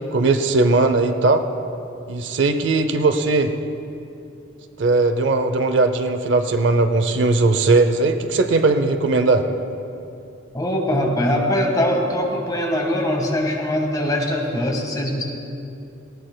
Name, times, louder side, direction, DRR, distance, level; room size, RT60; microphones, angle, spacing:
voice 1, 0.0-1.4 2.1-3.5 4.8-9.5, right 3 dB, 60° right, 9 dB, 0.6 m, -18 dB
voice 2, 10.5-15.2, left 1 dB, 20° left, 0 dB, 1.6 m, -22 dB
19.0 x 16.5 x 2.3 m, 2.7 s
head